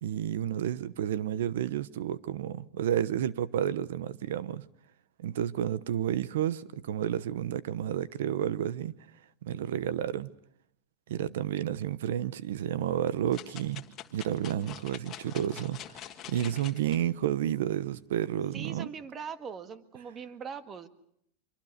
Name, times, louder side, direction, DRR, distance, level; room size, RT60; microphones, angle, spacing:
voice 1, 0.0-4.7 5.2-9.0 9.4-10.3 11.1-13.8 14.1-18.9, right 10 dB, 80° right, 0.9 m, -31 dB
sound 1, 13.3-17.0 17.5-17.6, left 11 dB, 35° left, 1.7 m, -45 dB
voice 2, 18.5-20.9, right 6 dB, 25° right, 1.6 m, -41 dB
25.0 x 23.5 x 6.6 m
supercardioid pair, 135°, 0 cm